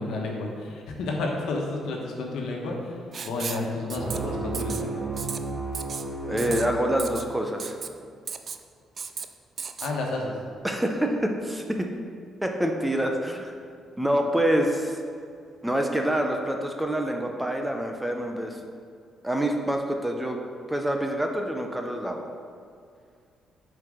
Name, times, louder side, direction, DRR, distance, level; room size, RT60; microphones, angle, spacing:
voice 1, 0.0-5.0 9.8-10.3, left 2 dB, 80° left, 0 dB, 1.2 m, -31 dB
Writing, 3.1-3.6 3.9-4.2 4.5-4.8 5.2-5.4 5.7-6.0 6.4-6.7 7.0-7.2 7.6-7.9 8.3-8.6 9.0-9.2 9.6-9.9, right 6 dB, 50° right, 0.4 m, -34 dB
sound 1, 4.0-7.5, right 3 dB, 30° right, 1.0 m, -33 dB
voice 2, 6.3-7.8 10.6-11.9 12.4-13.5 14.0-15.0 15.6-18.6 19.2-20.4 20.7-22.2, right 1 dB, 5° right, 3 dB, 0.8 m, -26 dB
5.9 x 4.7 x 6.3 m, 2.3 s
cardioid pair, 90°, 0 cm